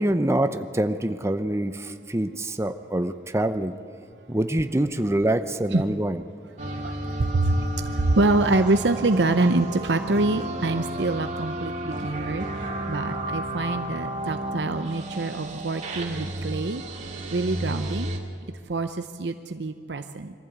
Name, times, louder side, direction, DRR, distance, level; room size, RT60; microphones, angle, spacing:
voice 1, 0.0-3.8 4.3-6.2, right 1 dB, 15° right, 8 dB, 0.8 m, -25 dB
sound 1, 6.6-18.2, right 1 dB, 45° right, 2.3 m, -32 dB
voice 2, 6.8-16.8 17.3-18.1 18.7-20.3, right 2 dB, 75° right, 8 dB, 0.7 m, -25 dB
23.0 x 14.5 x 8.1 m, 2.4 s
head